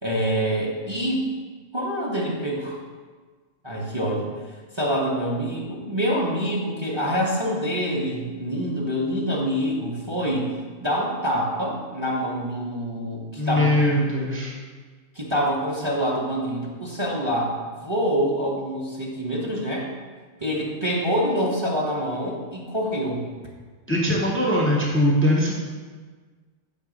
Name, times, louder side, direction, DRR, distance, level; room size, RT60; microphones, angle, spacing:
voice 1, 0.0-1.3 1.7-2.8 3.6-4.3 4.7-13.9 15.1-19.9 20.4-23.3, equal, 25° right, -3 dB, 0.7 m, -26 dB
voice 2, 13.4-14.5 23.9-25.5, left 1 dB, 15° left, -3 dB, 0.6 m, -21 dB
6.6 x 3.2 x 5.0 m, 1.4 s
omnidirectional pair, 1.2 m